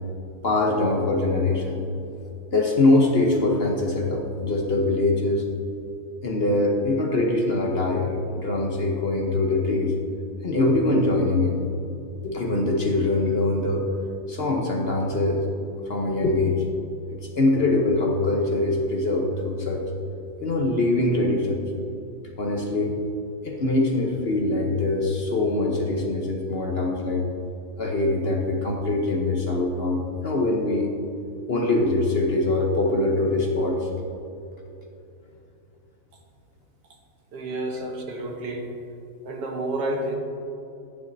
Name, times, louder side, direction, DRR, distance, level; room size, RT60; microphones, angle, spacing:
voice 1, 0.4-1.8 2.5-5.4 6.2-9.9 10.4-11.6 12.2-13.9 14.3-15.4 15.8-16.6 17.3-19.8 20.4-21.7 22.4-23.0 23.4-27.2 27.8-30.9 31.5-33.9, left 2 dB, 45° left, 0 dB, 0.9 m, -23 dB
voice 2, 37.3-38.7 39.3-40.2, right 1 dB, 80° right, 1 dB, 1.7 m, -30 dB
12.0 x 9.8 x 2.7 m, 2.8 s
omnidirectional pair, 1.7 m